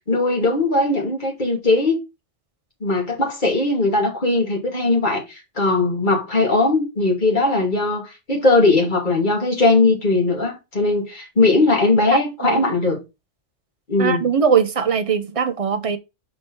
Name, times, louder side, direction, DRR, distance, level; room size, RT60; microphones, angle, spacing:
voice 1, 0.1-2.0 2.8-13.0 13.9-14.2, left 2 dB, 40° left, 2.5 m, -19 dB
voice 2, 12.1-12.6 14.0-16.0, right 6 dB, 35° right, 0.8 m, -21 dB
5.1 x 4.4 x 4.5 m
omnidirectional pair, 1.2 m